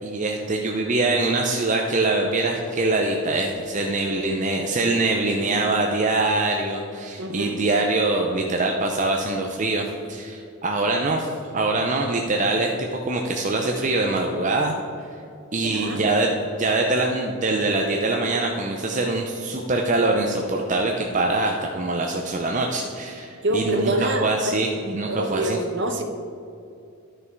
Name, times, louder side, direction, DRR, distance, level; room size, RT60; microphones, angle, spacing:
voice 1, 0.0-11.3 11.5-12.7 13.0-15.1 15.5-25.6, right 2 dB, 35° right, 1 dB, 0.6 m, -24 dB
voice 2, 7.2-7.7 15.6-16.0 23.4-24.6 25.1-26.0, right 1 dB, 55° right, 5 dB, 1.0 m, -26 dB
11.5 x 6.6 x 4.6 m, 2.6 s
head